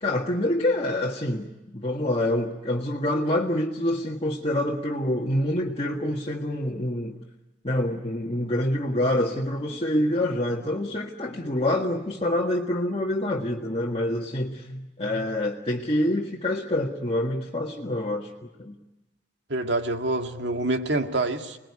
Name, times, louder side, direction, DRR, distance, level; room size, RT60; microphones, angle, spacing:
voice 1, 0.0-7.2 7.6-18.8, left 1 dB, 30° left, -2 dB, 1.7 m, -26 dB
voice 2, 19.5-21.6, right 2 dB, 65° right, 5 dB, 2.1 m, -26 dB
26.5 x 20.0 x 9.8 m, 1.0 s
head